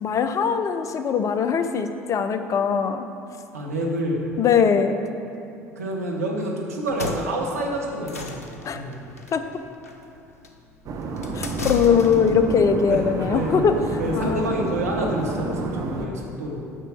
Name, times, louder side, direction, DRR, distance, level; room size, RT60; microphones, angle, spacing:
voice 1, 0.0-3.1 4.4-5.0 8.6-8.8 9.3-9.4 11.3-13.7 14.1-14.5, left 6 dB, 40° left, 9 dB, 0.7 m, -21 dB
voice 2, 3.5-4.2 5.7-9.0 12.9-13.0 13.3-13.6 14.0-16.6, right 1 dB, 85° right, -1 dB, 1.4 m, -28 dB
sound 1, 6.8-12.4, left 3 dB, 85° left, 0.6 m, -35 dB
sound 2, 10.8-16.1, right 3 dB, 50° right, 1.1 m, -30 dB
9.0 x 6.4 x 6.4 m, 2.7 s
figure-of-eight pair, 60°, 8 cm